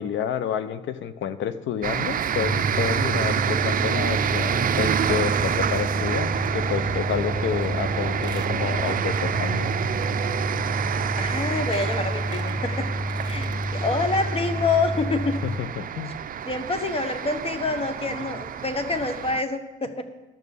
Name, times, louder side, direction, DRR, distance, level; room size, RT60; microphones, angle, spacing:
voice 1, 0.0-9.7 15.4-16.1, left 9 dB, 75° left, 12 dB, 0.7 m, -29 dB
sound 1, 1.8-19.4, right 9 dB, 45° right, 0.5 m, -28 dB
sound 2, 2.4-15.6, equal, ahead, 0.9 m, -30 dB
Squeak, 7.6-7.8 8.1-9.7 10.0-10.1 10.9-11.0 11.3-13.6 14.1-14.2 14.4-14.5, right 3 dB, 20° right, 1.3 m, -45 dB
voice 2, 11.2-12.9 13.2-15.4 16.5-20.0, left 3 dB, 30° left, 8 dB, 1.3 m, -27 dB
12.0 x 6.3 x 7.0 m, 1.1 s
cardioid pair, 90°, 20 cm